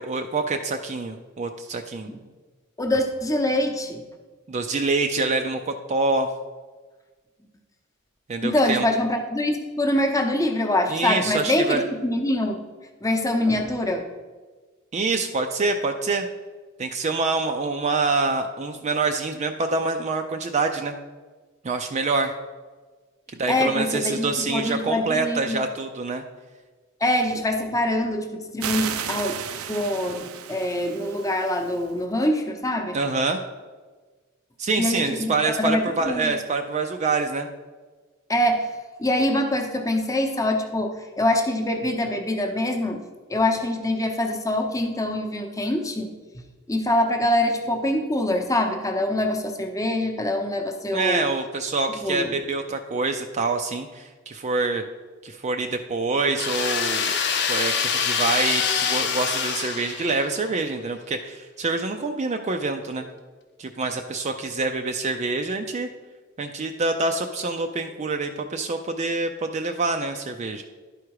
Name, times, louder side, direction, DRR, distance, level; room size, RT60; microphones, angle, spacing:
voice 1, 0.0-2.1 4.5-6.3 8.3-8.9 10.9-11.8 14.9-16.3 16.8-20.9 21.6-22.3 23.3-26.2 32.9-33.4 34.6-37.5 50.9-54.8 55.2-57.2 57.5-63.1 63.6-65.9 66.4-70.6, right 3 dB, 35° right, 5 dB, 0.4 m, -26 dB
voice 2, 2.8-4.0 8.4-12.6 13.0-14.1 23.5-25.6 27.0-29.4 29.7-33.0 34.8-36.3 38.3-38.7 39.0-43.0 43.3-46.1 46.7-51.3 52.0-52.3, left 1 dB, 15° left, 4 dB, 0.8 m, -24 dB
sound 1, 28.6-31.9, right 8 dB, 90° right, 0.5 m, -33 dB
sound 2, 56.4-60.5, left 6 dB, 55° left, 0.7 m, -25 dB
11.0 x 4.8 x 4.7 m, 1.3 s
head